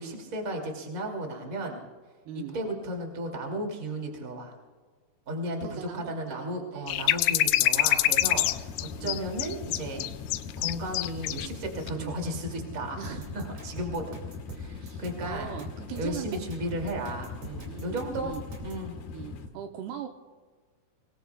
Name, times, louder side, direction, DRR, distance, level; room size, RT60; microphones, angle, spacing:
voice 1, 0.0-1.8 2.5-4.5 5.3-8.7 9.0-10.1 10.6-14.0 14.5-15.5 16.0-18.4 18.6-18.9, right 1 dB, 25° right, 1 dB, 2.2 m, -34 dB
voice 2, 2.3-2.6 5.6-6.9 7.7-8.0 8.9-9.2 11.9-12.1 13.0-13.4 14.8-16.4 17.7-18.4 19.1-20.1, right 10 dB, 80° right, 5 dB, 2.6 m, -40 dB
sound 1, 6.9-11.5 11.8-11.9, left 16 dB, 90° left, 2.8 m, -25 dB
sound 2, 8.2-19.5, left 4 dB, 60° left, 2.2 m, -41 dB
sound 3, 13.0-18.9, right 1 dB, 40° right, 3.1 m, -44 dB
24.5 x 21.0 x 2.3 m, 1.5 s
omnidirectional pair, 5.0 m